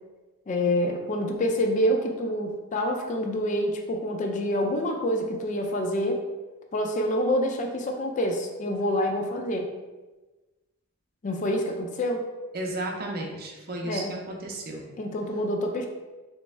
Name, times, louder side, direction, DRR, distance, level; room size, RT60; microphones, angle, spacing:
voice 1, 0.5-6.2 6.7-9.7 11.2-12.2 13.8-14.2 15.0-15.8, equal, 35° left, 3 dB, 0.3 m, -27 dB
voice 2, 12.5-14.9, right 1 dB, 45° right, 1 dB, 0.6 m, -33 dB
3.4 x 3.1 x 3.2 m, 1.2 s
head